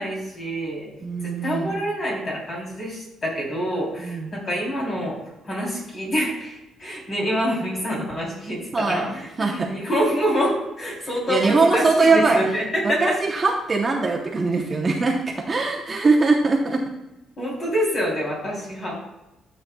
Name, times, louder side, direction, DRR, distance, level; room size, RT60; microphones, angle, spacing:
voice 1, 0.0-0.9 1.2-5.2 5.4-13.2 17.4-18.9, equal, 30° left, -4 dB, 3.3 m, -26 dB
voice 2, 1.0-1.7 4.0-4.3 8.7-9.0 9.4-9.7 11.3-12.4 12.8-16.8, right 3 dB, 25° right, 0 dB, 0.8 m, -21 dB
12.5 x 7.6 x 2.3 m, 0.96 s
cardioid pair, 160°, 0 cm